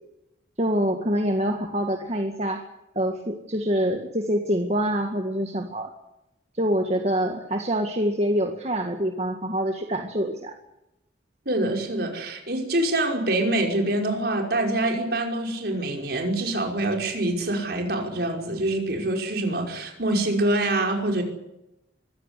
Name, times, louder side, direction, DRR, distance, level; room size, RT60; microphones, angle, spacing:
voice 1, 0.6-2.6 3.0-5.9 6.6-10.5, equal, 35° right, 4 dB, 1.9 m, -25 dB
voice 2, 11.5-21.2, right 1 dB, 55° right, 2 dB, 5.5 m, -25 dB
24.0 x 16.0 x 10.0 m, 0.89 s
head